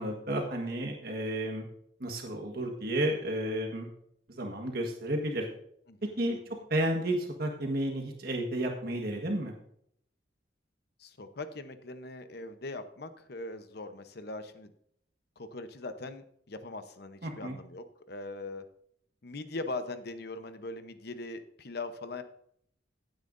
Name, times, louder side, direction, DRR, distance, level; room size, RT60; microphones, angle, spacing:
voice 1, 0.0-1.6 2.0-3.9 4.3-5.5 6.2-6.4 6.7-9.6 17.2-17.6, right 1 dB, 55° right, 2 dB, 1.5 m, -32 dB
voice 2, 11.0-14.7 15.4-18.6 19.2-22.2, left 2 dB, 60° left, 9 dB, 0.9 m, -41 dB
16.0 x 9.1 x 2.6 m, 0.68 s
head